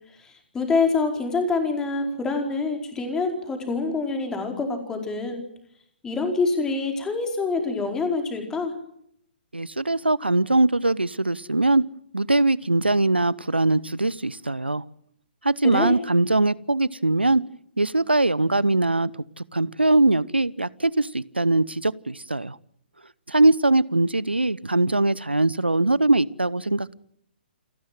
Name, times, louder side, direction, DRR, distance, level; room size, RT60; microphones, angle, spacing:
voice 1, 0.5-5.4 6.0-8.7 15.7-15.9, left 4 dB, 10° left, 4 dB, 4.6 m, -25 dB
voice 2, 9.5-11.8 12.1-14.8 15.4-17.4 17.8-19.1 19.4-22.6 23.3-26.9, right 2 dB, 85° right, 22 dB, 0.9 m, -21 dB
29.0 x 13.0 x 9.2 m, 0.70 s
figure-of-eight pair, 125°, 6 cm